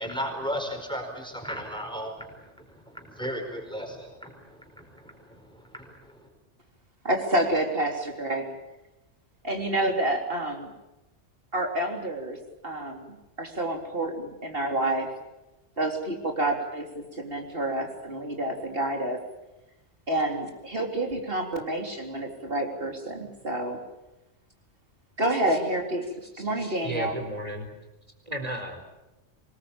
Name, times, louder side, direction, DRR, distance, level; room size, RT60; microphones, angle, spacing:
voice 1, 0.0-6.3, equal, 5° left, 3 dB, 4.9 m, -36 dB
voice 2, 7.0-8.5 9.4-10.7 11.5-12.4 12.6-15.1 15.8-19.2 20.1-23.8 25.2-26.1 26.4-27.1, right 1 dB, 50° right, 3 dB, 3.8 m, -28 dB
voice 3, 26.3-27.7 28.2-28.8, right 1 dB, 30° right, 5 dB, 4.3 m, -34 dB
24.5 x 21.0 x 8.8 m, 0.98 s
omnidirectional pair, 1.2 m